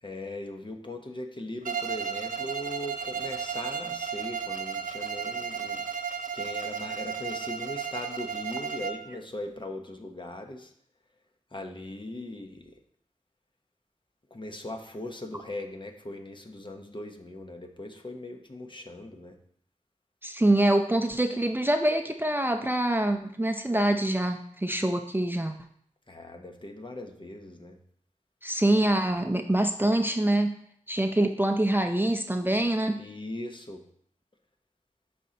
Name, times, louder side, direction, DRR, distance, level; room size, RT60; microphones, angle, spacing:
voice 1, 0.0-5.9 6.3-10.7 11.5-12.8 14.3-19.4 26.1-27.8 33.0-33.8, left 1 dB, 35° left, 4 dB, 1.0 m, -39 dB
Bowed string instrument, 1.6-9.1, right 7 dB, 75° right, 0.4 m, -34 dB
voice 2, 20.2-25.5 28.4-30.5 30.9-33.0, right 1 dB, 15° right, 5 dB, 0.6 m, -25 dB
11.0 x 4.3 x 2.9 m, 0.65 s
cardioid pair, 50°, 14 cm